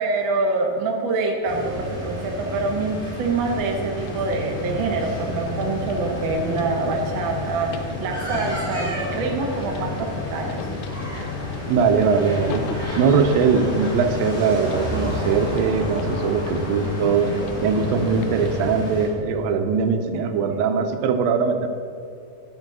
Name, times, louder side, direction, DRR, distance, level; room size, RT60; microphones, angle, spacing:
voice 1, 0.0-10.7, right 3 dB, 60° right, 1 dB, 1.3 m, -25 dB
sound 1, 1.4-19.1, equal, 20° right, 2.7 m, -31 dB
sound 2, 3.9-19.0, left 8 dB, 90° left, 1.7 m, -34 dB
voice 2, 11.7-12.7 13.0-17.3 17.6-21.7, right 5 dB, 85° right, 7 dB, 2.4 m, -21 dB
9.8 x 7.2 x 6.0 m, 2.6 s
omnidirectional pair, 4.0 m